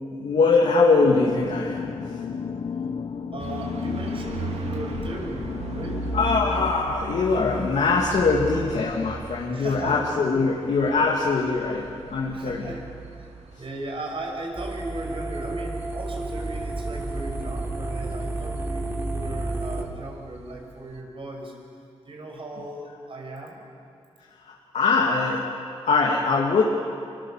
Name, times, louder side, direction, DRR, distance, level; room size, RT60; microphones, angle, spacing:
voice 1, 0.1-2.2 6.1-12.7 24.4-25.5 25.9-26.6, left 4 dB, 80° left, -2 dB, 2.5 m, -22 dB
sound 1, 1.0-6.7, left 6 dB, 55° left, 0.9 m, -33 dB
voice 2, 3.3-6.0 9.5-10.0 10.5-10.6 12.3-12.8 13.2-13.3 13.6-21.5 22.0-23.6, right 2 dB, 55° right, 1 dB, 6.1 m, -37 dB
Backyard Crickets and traffic, 3.4-21.0, right 4 dB, 75° right, 2.6 m, -38 dB
sound 2, 14.6-19.8, right 2 dB, 20° right, 3.2 m, -31 dB
25.5 x 23.5 x 7.4 m, 2.4 s
cardioid pair, 80°, 11 cm